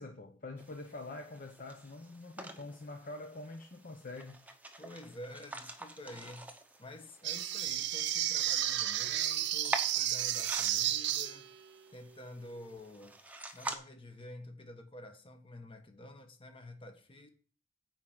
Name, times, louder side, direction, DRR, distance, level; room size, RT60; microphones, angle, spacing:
voice 1, 0.0-4.4, left 2 dB, 45° left, 0.9 m, -45 dB
sound 1, 0.6-13.8, right 2 dB, 10° right, 0.9 m, -46 dB
voice 2, 4.8-6.5 6.8-11.5 11.9-13.2 13.5-17.3, left 1 dB, 25° left, 1.4 m, -49 dB
sound 2, 7.2-11.6, right 12 dB, 60° right, 0.6 m, -32 dB
9.6 x 4.7 x 7.5 m
head